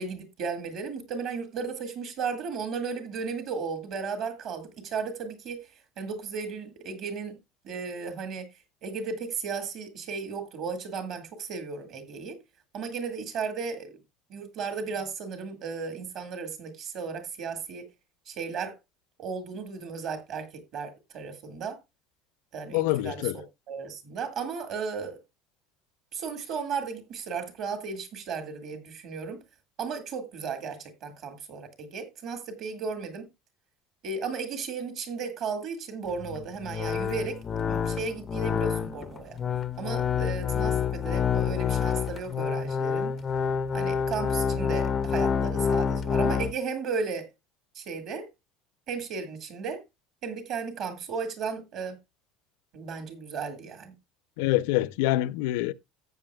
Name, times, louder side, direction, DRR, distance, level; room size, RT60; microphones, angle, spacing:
voice 1, 0.0-5.7 6.0-7.4 7.6-8.5 8.8-12.4 12.7-14.0 14.3-17.9 18.3-18.8 19.2-21.8 22.5-25.2 26.1-29.4 29.8-33.3 34.0-37.4 37.7-39.4 39.8-43.2 43.7-47.3 47.8-48.3 48.9-49.8 50.2-52.0 52.7-53.9, right 5 dB, 40° right, 1.8 m, -35 dB
voice 2, 22.7-23.4 54.4-55.7, left 16 dB, 80° left, 0.5 m, -25 dB
sound 1, 36.1-46.5, left 7 dB, 20° left, 0.5 m, -28 dB
14.0 x 8.1 x 2.2 m
cardioid pair, 170°, 0 cm